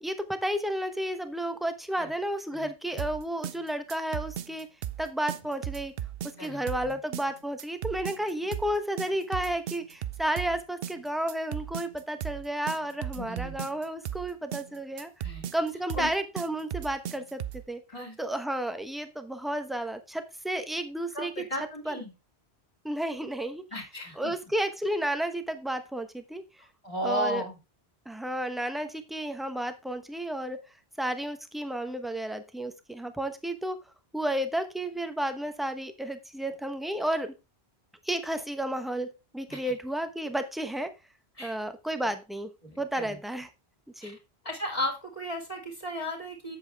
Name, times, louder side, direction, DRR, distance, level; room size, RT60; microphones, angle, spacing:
voice 1, 0.0-4.7 5.0-5.9 6.4-15.1 15.5-17.4 17.7-17.8 18.2-21.3 21.9-22.0 22.8-23.6 24.2-26.4 27.0-27.4 28.1-30.6 31.0-33.8 34.1-37.3 38.1-39.1 39.3-40.9 41.4-42.5 42.8-43.5 44.0-44.2, right 1 dB, ahead, 8 dB, 0.9 m, -32 dB
sound 1, 3.0-17.7, right 10 dB, 65° right, 0.8 m, -36 dB
voice 2, 6.4-7.0 13.1-13.6 15.2-15.5 16.0-16.1 17.9-18.2 21.1-22.1 23.7-24.3 26.8-27.6 39.5-39.7 41.4-41.6 42.6-43.2 44.0-44.2 44.4-46.6, equal, 30° left, 0 dB, 2.7 m, -35 dB
8.0 x 7.6 x 3.5 m, 0.26 s
omnidirectional pair, 1.1 m